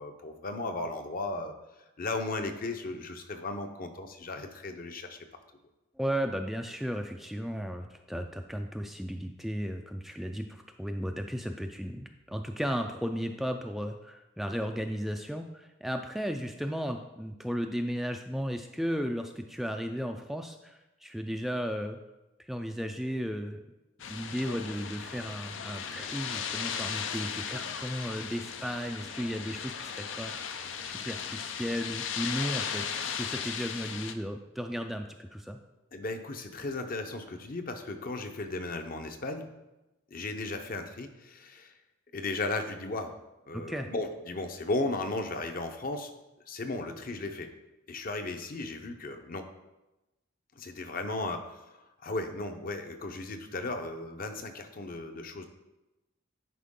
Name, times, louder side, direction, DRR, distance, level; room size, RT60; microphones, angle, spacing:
voice 1, 0.0-1.6 2.0-5.2 35.9-39.5 40.1-41.7 42.1-43.1 43.5-46.1 46.5-47.5 47.9-49.5 50.6-55.5, left 2 dB, 50° left, 6 dB, 0.7 m, -35 dB
voice 2, 6.0-22.0 22.4-23.6 24.1-35.6 43.5-43.9, equal, ahead, 4 dB, 0.3 m, -35 dB
sound 1, 24.0-34.1, left 7 dB, 85° left, 0.6 m, -37 dB
10.0 x 4.6 x 3.7 m, 1.0 s
head